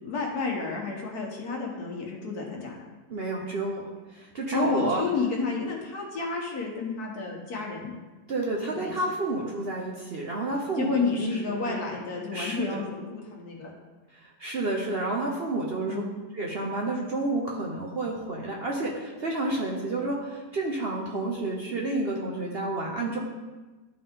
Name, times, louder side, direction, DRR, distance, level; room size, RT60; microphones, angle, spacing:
voice 1, 0.0-2.9 4.5-8.0 8.7-8.9 10.8-13.7 15.8-16.2, left 4 dB, 65° left, -1 dB, 1.7 m, -31 dB
voice 2, 3.1-5.0 8.3-11.7 12.3-12.8 14.4-16.0 16.3-23.2, right 2 dB, 45° right, -2 dB, 0.8 m, -30 dB
11.5 x 4.2 x 3.7 m, 1.2 s
omnidirectional pair, 1.8 m